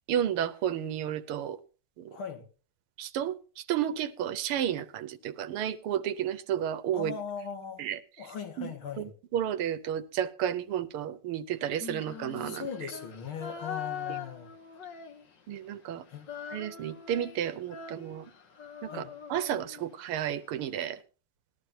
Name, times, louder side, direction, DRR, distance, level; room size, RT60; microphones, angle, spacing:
voice 1, 0.1-1.6 2.0-2.1 3.0-3.4 3.7-7.2 7.8-8.0 8.6-8.7 9.0-12.7 15.5-16.0 16.5-18.3 18.8-19.0 19.3-21.0, right 10 dB, 85° right, 1.7 m, -32 dB
voice 2, 2.1-2.5 6.9-7.8 8.2-9.1 12.4-14.5 16.1-16.3 18.9-19.1, left 6 dB, 75° left, 2.6 m, -39 dB
Female singing, 11.7-15.6 15.9-20.1, left 7 dB, 60° left, 2.1 m, -42 dB
19.5 x 12.0 x 2.8 m
omnidirectional pair, 2.4 m